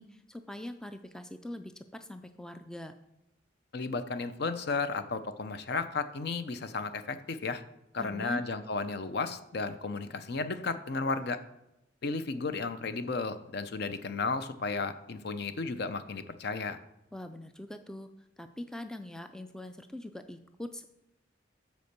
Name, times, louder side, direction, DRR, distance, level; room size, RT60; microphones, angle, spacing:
voice 1, 0.0-2.9 8.0-8.4 17.1-20.8, left 1 dB, 5° left, 8 dB, 0.3 m, -43 dB
voice 2, 3.7-7.6 7.9-11.4 12.0-16.8, left 4 dB, 55° left, 10 dB, 0.6 m, -34 dB
8.3 x 4.4 x 6.6 m, 0.88 s
head